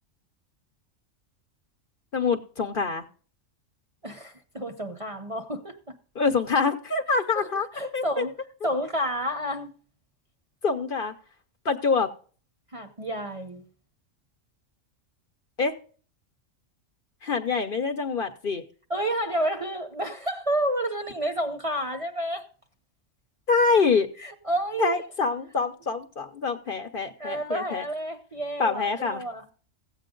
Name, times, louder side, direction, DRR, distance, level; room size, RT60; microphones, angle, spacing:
voice 1, 2.1-3.0 6.1-7.7 7.9-8.2 10.6-11.1 11.6-12.1 15.6-15.8 17.2-18.6 23.5-24.1 24.8-27.8 28.6-29.2, left 4 dB, 50° left, 0.9 m, -25 dB
voice 2, 4.0-5.9 7.3-8.4 8.6-9.7 12.7-13.7 18.9-22.4 24.2-25.0 27.2-29.4, right 1 dB, 30° right, 0.8 m, -30 dB
15.5 x 8.3 x 3.8 m
omnidirectional pair, 1.3 m